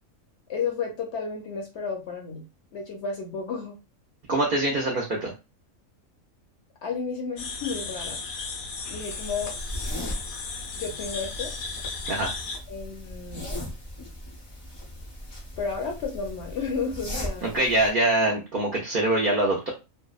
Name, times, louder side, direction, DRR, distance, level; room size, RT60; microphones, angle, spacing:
voice 1, 0.5-2.4 2.7-3.8 6.8-8.2 8.9-9.5 10.8-11.5 12.7-13.5 15.6-17.6, left 5 dB, 60° left, 1 dB, 0.8 m, -32 dB
voice 2, 4.3-5.3 12.1-12.3 17.4-19.7, right 1 dB, 60° right, -1 dB, 0.5 m, -24 dB
sound 1, 7.4-12.6, left 4 dB, 85° left, 1.0 m, -35 dB
sound 2, 9.0-17.9, left 1 dB, 35° left, 0.4 m, -38 dB
2.6 x 2.1 x 2.3 m, 0.28 s
omnidirectional pair, 1.4 m